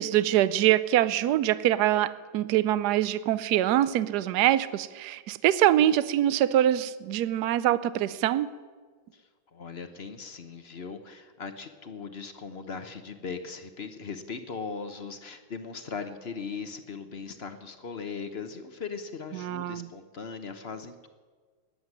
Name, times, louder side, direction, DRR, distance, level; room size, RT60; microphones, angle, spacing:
voice 1, 0.0-8.5 19.3-19.9, right 12 dB, 70° right, 16 dB, 1.1 m, -24 dB
voice 2, 9.1-21.1, left 5 dB, 45° left, 9 dB, 0.9 m, -39 dB
18.5 x 7.7 x 9.7 m, 1.5 s
omnidirectional pair, 2.1 m